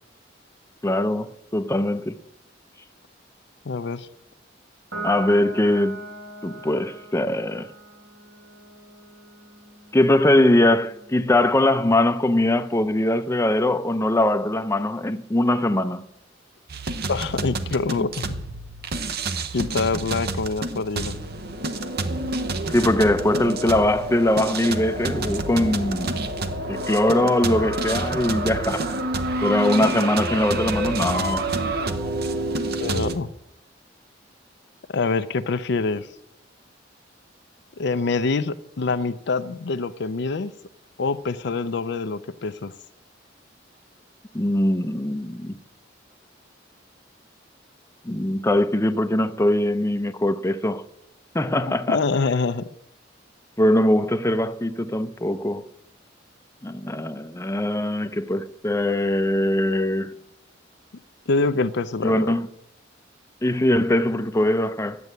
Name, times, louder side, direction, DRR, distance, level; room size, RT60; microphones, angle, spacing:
voice 1, 0.8-2.2 5.0-6.0 6.4-7.7 9.9-16.0 22.7-26.3 26.7-28.9 29.4-31.5 44.3-45.6 48.0-50.8 51.3-52.0 53.6-55.6 56.6-60.1 62.0-62.5 63.4-65.0, left 1 dB, 15° left, 0.6 m, -21 dB
voice 2, 3.7-4.1 17.1-18.4 19.5-21.2 32.8-33.3 34.9-36.1 37.8-40.5 41.0-42.7 51.9-52.7 61.3-62.3, left 4 dB, 65° left, 0.5 m, -25 dB
Piano, 4.9-11.6, right 2 dB, 80° right, 4.4 m, -40 dB
sound 1, 16.7-33.2, right 2 dB, 60° right, 0.9 m, -28 dB
11.0 x 7.7 x 8.2 m
head